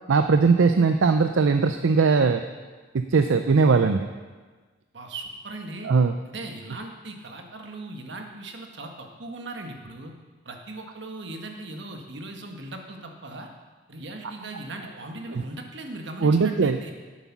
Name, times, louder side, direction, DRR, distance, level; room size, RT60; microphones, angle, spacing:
voice 1, 0.1-2.5 2.9-4.1 5.8-6.1 15.3-15.4 16.2-16.9, right 4 dB, 85° right, 8 dB, 0.5 m, -20 dB
voice 2, 4.9-5.9 6.2-10.1 10.4-13.5 13.9-16.9, right 2 dB, 65° right, 3 dB, 1.5 m, -38 dB
12.0 x 8.2 x 6.0 m, 1.4 s
head